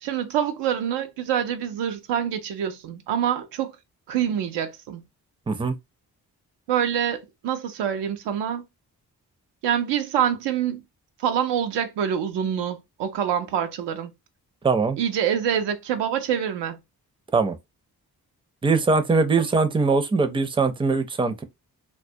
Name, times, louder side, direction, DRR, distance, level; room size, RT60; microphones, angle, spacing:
voice 1, 0.0-3.7 4.1-5.0 6.7-8.6 9.6-10.8 11.2-14.1 15.0-16.8, right 9 dB, 90° right, 0.5 m, -26 dB
voice 2, 14.6-15.0 17.3-17.6 18.6-21.4, right 4 dB, 15° right, 0.4 m, -21 dB
2.2 x 2.1 x 2.6 m
supercardioid pair, 45°, 41 cm